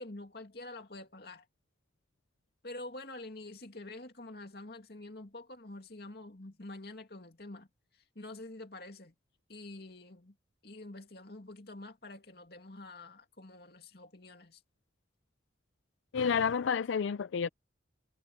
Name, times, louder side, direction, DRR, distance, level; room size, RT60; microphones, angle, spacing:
voice 1, 0.0-1.5 2.6-7.7 8.1-9.1 9.5-10.3 10.6-14.6, left 2 dB, 55° left, 2.6 m, -47 dB
voice 2, 16.1-17.5, left 6 dB, 85° left, 0.4 m, -30 dB
head